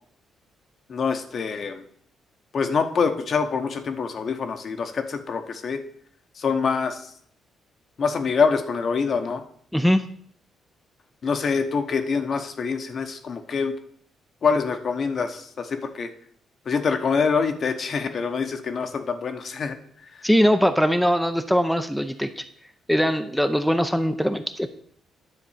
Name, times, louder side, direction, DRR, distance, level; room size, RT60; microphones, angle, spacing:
voice 1, 0.9-1.8 2.5-5.8 6.4-7.1 8.0-9.4 11.2-13.8 14.4-16.1 16.7-19.8, left 5 dB, 50° left, 7 dB, 1.0 m, -25 dB
voice 2, 20.2-22.4 22.9-24.7, equal, ahead, 7 dB, 0.6 m, -21 dB
9.9 x 3.9 x 7.2 m, 0.64 s
cardioid pair, 90°, 0 cm